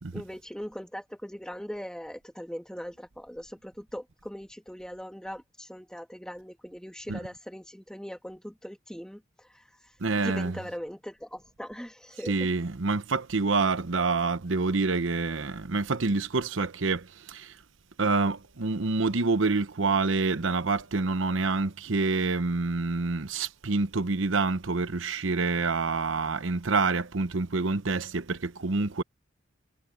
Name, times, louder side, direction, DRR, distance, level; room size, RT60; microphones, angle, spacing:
voice 1, 0.1-9.2 10.2-12.3, equal, 5° left, 2.8 m, -40 dB
voice 2, 10.0-10.6 12.2-17.5 18.0-29.0, right 3 dB, 75° right, 0.9 m, -27 dB
head